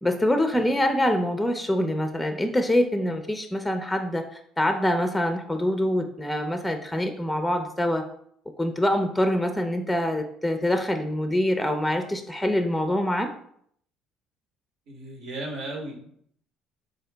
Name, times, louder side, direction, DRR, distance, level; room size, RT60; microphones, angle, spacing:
voice 1, 0.0-4.2 4.6-8.1 8.6-13.3, left 1 dB, 5° left, 6 dB, 0.5 m, -25 dB
voice 2, 14.9-16.1, right 1 dB, 70° right, 1 dB, 1.0 m, -35 dB
3.8 x 2.7 x 3.3 m, 0.66 s
hypercardioid pair, 65°, 0 cm